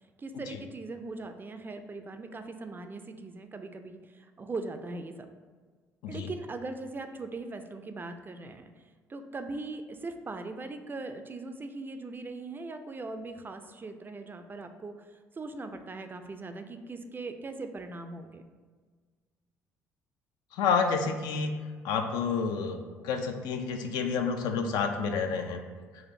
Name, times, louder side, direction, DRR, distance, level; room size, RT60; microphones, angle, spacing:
voice 1, 0.2-5.3 6.1-8.7 9.1-15.1 15.4-18.4, right 3 dB, 25° right, 7 dB, 0.3 m, -40 dB
voice 2, 20.5-21.5 21.8-22.8 23.0-25.6, left 5 dB, 65° left, 5 dB, 0.4 m, -29 dB
4.2 x 2.5 x 2.6 m, 1.5 s
hypercardioid pair, 50°, 8 cm